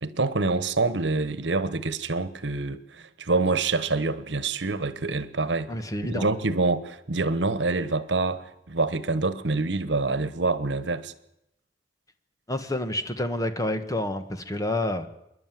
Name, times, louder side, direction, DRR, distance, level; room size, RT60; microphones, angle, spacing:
voice 1, 0.0-5.7 6.1-11.1, right 3 dB, 85° right, 1.2 m, -26 dB
voice 2, 5.7-6.3 12.5-15.1, left 1 dB, 20° left, 1.4 m, -28 dB
26.0 x 11.0 x 9.2 m
head